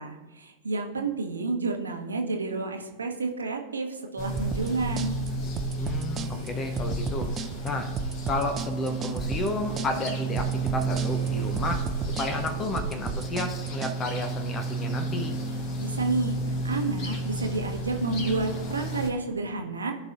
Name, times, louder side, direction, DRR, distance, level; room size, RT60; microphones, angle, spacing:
voice 1, 0.0-5.2 15.8-19.9, right 3 dB, 75° right, 3 dB, 1.1 m, -30 dB
sound 1, 4.2-19.1, right 3 dB, 40° left, 1.4 m, -32 dB
sound 2, 4.4-14.0, right 5 dB, 25° right, 0.6 m, -33 dB
voice 2, 5.8-7.3 7.6-7.9 8.3-15.4, left 2 dB, 25° left, 7 dB, 0.8 m, -32 dB
15.0 x 5.4 x 2.6 m, 1.1 s
figure-of-eight pair, 90°, 0 cm